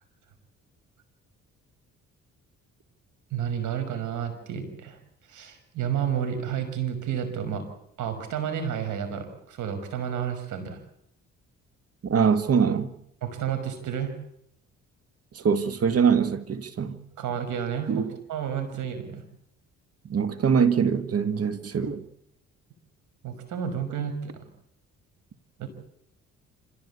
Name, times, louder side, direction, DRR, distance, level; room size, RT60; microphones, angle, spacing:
voice 1, 3.3-5.0 5.3-7.6 8.0-10.8 13.2-14.1 17.2-18.0 18.3-19.2 23.2-24.4 25.6-25.7, right 8 dB, 80° right, 5.7 m, -31 dB
voice 2, 12.0-12.9 15.3-17.0 17.9-18.1 20.1-22.0, right 6 dB, 50° right, 2.0 m, -23 dB
27.0 x 16.5 x 8.5 m
cardioid pair, 90°, 30 cm